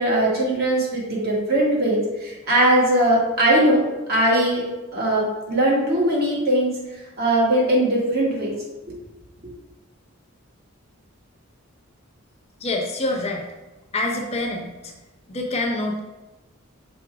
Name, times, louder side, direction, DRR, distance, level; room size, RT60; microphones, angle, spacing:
voice 1, 0.0-3.8 4.1-4.6 4.9-6.7 7.2-8.5 8.9-9.0, right 1 dB, 50° right, -4 dB, 2.0 m, -20 dB
voice 2, 12.6-13.5 13.9-14.9 15.3-16.0, left 2 dB, 30° left, 1 dB, 0.7 m, -26 dB
6.1 x 4.4 x 4.8 m, 1.1 s
head